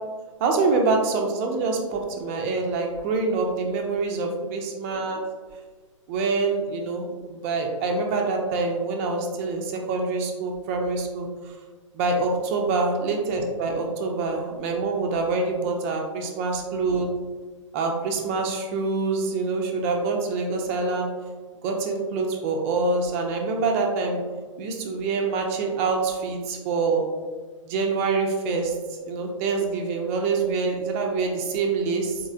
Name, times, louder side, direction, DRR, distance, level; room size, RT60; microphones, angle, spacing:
voice 1, 0.4-5.2 6.1-11.5 11.9-17.1 17.7-21.1 21.6-24.2 24.6-27.0 27.7-28.7 29.0-32.2, right 3 dB, 25° right, 1 dB, 0.4 m, -25 dB
3.5 x 3.1 x 2.5 m, 1.4 s
figure-of-eight pair, 115°, 17 cm